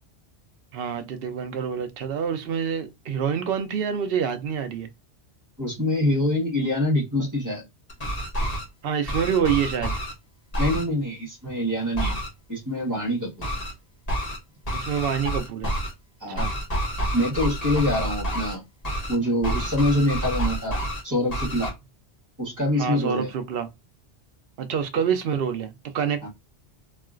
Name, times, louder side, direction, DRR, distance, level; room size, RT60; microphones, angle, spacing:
voice 1, 0.7-4.9 8.8-9.9 14.7-15.7 16.4-16.5 22.8-23.7 24.6-26.3, right 7 dB, 60° right, 0.7 m, -27 dB
voice 2, 5.6-7.6 10.6-12.2 12.5-13.5 16.2-16.5 17.1-18.6 19.1-20.8 21.0-21.7 22.4-23.3 26.2-26.3, left 1 dB, 15° right, 1.4 m, -25 dB
sound 1, 7.9-8.6 9.1-10.1 10.5-10.8 12.0-12.3 13.4-13.7 14.1-14.4 14.7-15.9 16.4-18.5 18.8-19.1 19.4-21.0 21.3-21.7, equal, 35° left, 1.2 m, -28 dB
3.1 x 2.8 x 2.4 m
omnidirectional pair, 1.2 m